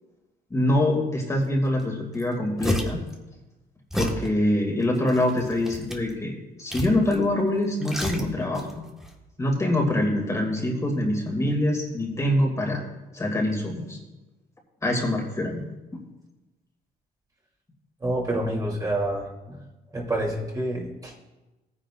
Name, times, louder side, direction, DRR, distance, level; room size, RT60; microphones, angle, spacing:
voice 1, 0.5-3.0 3.9-8.8 9.4-12.8 13.1-14.0 14.8-15.6 15.9-16.0, left 1 dB, 15° left, -1 dB, 2.4 m, -24 dB
sound 1, 1.8-1.9 2.1-3.1 3.9-4.3 4.9-6.1 6.7-7.3 7.5-8.7 9.0-9.1, equal, ahead, 1.5 m, -30 dB
voice 2, 18.0-19.6 19.9-21.1, right 1 dB, 20° right, -2 dB, 2.8 m, -28 dB
17.5 x 9.9 x 2.5 m, 1.1 s
cardioid pair, 110°, 17 cm